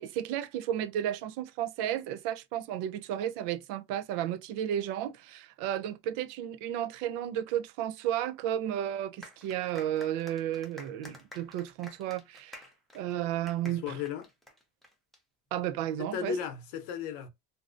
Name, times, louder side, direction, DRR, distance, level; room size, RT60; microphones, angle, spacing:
voice 1, 0.0-12.6 12.9-13.9 15.5-16.3, right 11 dB, 75° right, 0.5 m, -33 dB
sound 1, 9.2-15.2, left 1 dB, ahead, 0.4 m, -51 dB
voice 2, 13.6-14.3 16.0-17.3, left 7 dB, 70° left, 0.8 m, -35 dB
2.6 x 2.1 x 2.4 m
cardioid pair, 135°, 42 cm